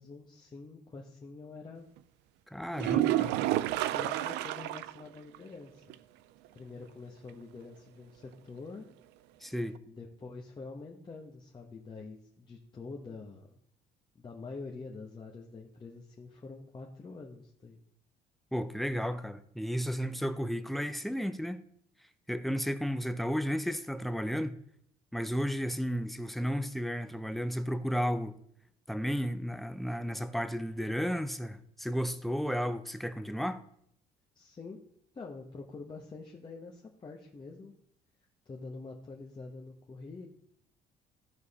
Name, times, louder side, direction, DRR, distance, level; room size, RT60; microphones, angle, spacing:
voice 1, 0.0-1.9 2.9-3.3 3.9-5.9 6.5-8.9 9.9-13.6 14.1-17.8 34.3-34.8 35.1-37.7 38.4-40.3, left 3 dB, 25° left, 1.1 m, -46 dB
voice 2, 2.5-3.3 9.4-9.7 18.5-21.6 22.3-24.6 25.1-28.3 28.9-33.6, equal, ahead, 0.6 m, -33 dB
sound 1, 2.7-5.0 5.3-5.4 5.9-6.0 9.8-9.9, right 14 dB, 90° right, 0.4 m, -29 dB
14.0 x 4.8 x 4.1 m
cardioid pair, 110°, 17 cm